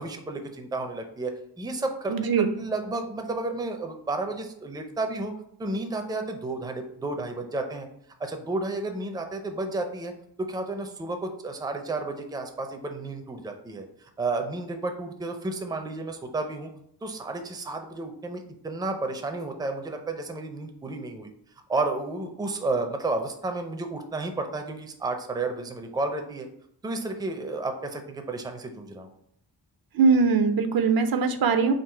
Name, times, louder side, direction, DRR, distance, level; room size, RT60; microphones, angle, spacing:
voice 1, 0.0-5.3 5.6-7.9 8.2-10.1 10.4-13.9 14.2-16.7 17.0-21.3 21.7-26.5 26.8-29.1, right 2 dB, 10° right, 5 dB, 0.4 m, -32 dB
voice 2, 2.1-2.5 29.9-31.7, right 5 dB, 60° right, 8 dB, 0.5 m, -21 dB
3.9 x 2.4 x 4.4 m, 0.69 s
wide cardioid pair, 95°, 41 cm